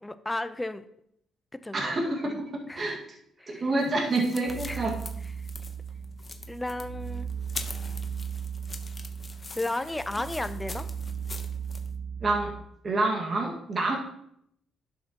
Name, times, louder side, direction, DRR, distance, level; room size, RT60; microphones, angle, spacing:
voice 1, 0.0-0.8 1.6-2.0 2.3-2.4 2.7-3.0 3.4-3.7 4.6-4.9 5.4-5.5 6.5-7.3 9.6-10.9, left 2 dB, 10° left, 11 dB, 0.6 m, -34 dB
voice 2, 1.7-3.0 3.5-5.0 12.2-12.5 12.8-14.0, right 2 dB, 40° right, -1 dB, 1.8 m, -27 dB
sound 1, 3.8-11.9, left 3 dB, 30° left, 0.9 m, -43 dB
sound 2, 4.5-12.5, right 7 dB, 75° right, 1.9 m, -37 dB
11.0 x 6.6 x 2.9 m, 0.73 s
cardioid pair, 90°, 0 cm